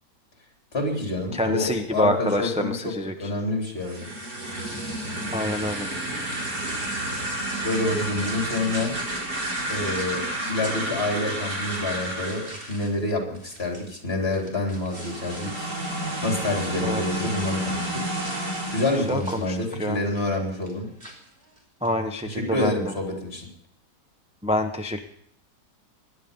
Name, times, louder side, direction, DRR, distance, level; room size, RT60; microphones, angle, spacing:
voice 1, 0.7-4.1 7.2-7.3 7.6-9.0 9.7-18.1 18.7-20.9 22.2-23.5, left 2 dB, 35° left, 1 dB, 3.8 m, -28 dB
voice 2, 1.3-3.1 5.3-5.9 16.8-17.0 19.1-20.0 21.8-22.9 24.4-25.0, left 1 dB, 5° right, 4 dB, 0.5 m, -26 dB
sound 1, 3.7-12.8 14.8-19.2, right 1 dB, 60° right, 4.5 m, -31 dB
sound 2, 6.1-15.6 15.9-22.0, right 1 dB, 30° right, 3.4 m, -48 dB
19.5 x 11.0 x 5.4 m, 0.70 s
omnidirectional pair, 1.9 m